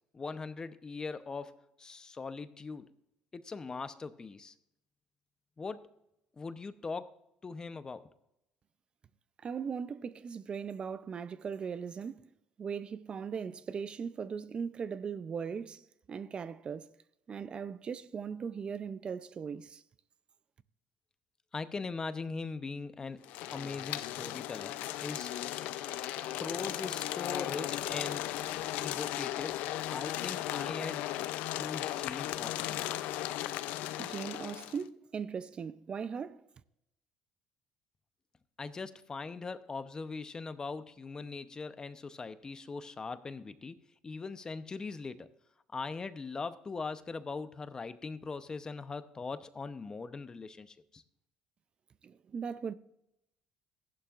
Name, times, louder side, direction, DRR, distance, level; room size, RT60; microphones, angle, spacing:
voice 1, 0.1-2.9 3.3-4.5 5.6-5.9 6.4-7.1 7.4-8.1 21.5-23.3 23.5-25.3 26.4-28.3 28.8-29.6 29.9-31.0 31.3-32.8 38.6-43.8 44.0-45.3 45.7-51.0, left 4 dB, 25° left, 0.8 m, -41 dB
voice 2, 9.4-12.3 12.6-16.9 17.3-19.8 34.0-36.4 52.0-52.7, right 6 dB, 40° right, 0.5 m, -39 dB
Keyboard (musical), 23.0-29.5, equal, 5° left, 3.0 m, -58 dB
sound 1, 23.2-34.8, left 14 dB, 75° left, 0.5 m, -36 dB
15.0 x 11.5 x 2.5 m
supercardioid pair, 85°, 3 cm